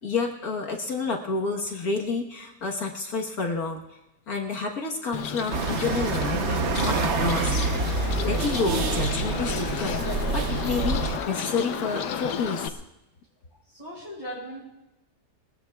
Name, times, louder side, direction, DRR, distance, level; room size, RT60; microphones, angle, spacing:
voice 1, 0.0-4.0 4.3-7.6 8.0-12.8, left 4 dB, 60° left, 1 dB, 1.7 m, -29 dB
Bird, 5.1-12.7, left 8 dB, 90° left, 1.4 m, -33 dB
sound 1, 5.5-11.2, right 4 dB, 50° right, 1.0 m, -27 dB
voice 2, 13.7-14.6, equal, 15° right, -11 dB, 6.0 m, -38 dB
22.5 x 20.0 x 2.3 m, 0.93 s
omnidirectional pair, 1.8 m